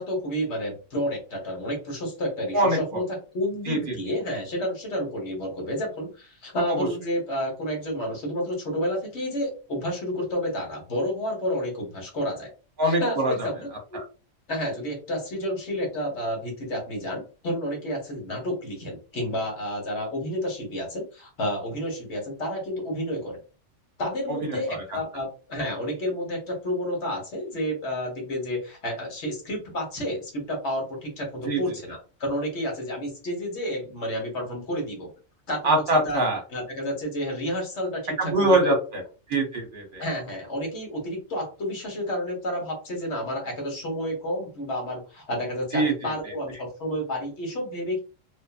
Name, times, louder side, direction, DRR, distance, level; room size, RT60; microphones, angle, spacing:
voice 1, 0.0-12.5 12.8-14.0 14.5-23.4 24.0-35.1 35.5-36.2 36.5-38.5 40.0-48.0, equal, 65° left, 0 dB, 1.3 m, -30 dB
voice 2, 3.7-4.0 6.7-6.9 12.8-13.3 13.9-14.0 24.3-24.8 31.4-31.8 35.6-36.4 38.2-39.0 39.3-40.0 45.7-46.1, right 1 dB, 45° right, 1 dB, 0.9 m, -23 dB
2.5 x 2.4 x 2.4 m, 0.34 s
omnidirectional pair, 1.3 m